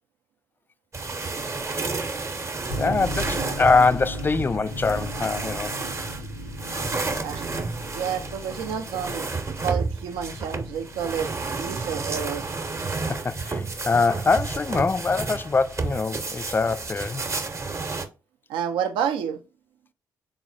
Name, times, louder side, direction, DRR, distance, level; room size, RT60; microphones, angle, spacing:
sound 1, 0.9-18.1, right 3 dB, 30° right, 0.7 m, -31 dB
sound 2, 2.7-16.0, equal, 90° left, 0.6 m, -38 dB
voice 1, 2.8-5.7 13.1-17.2, left 4 dB, 25° left, 0.3 m, -23 dB
voice 2, 7.9-9.3 9.6-12.5 18.5-19.4, right 8 dB, 75° right, 0.4 m, -29 dB
4.0 x 2.0 x 3.8 m
hypercardioid pair, 40°, 9 cm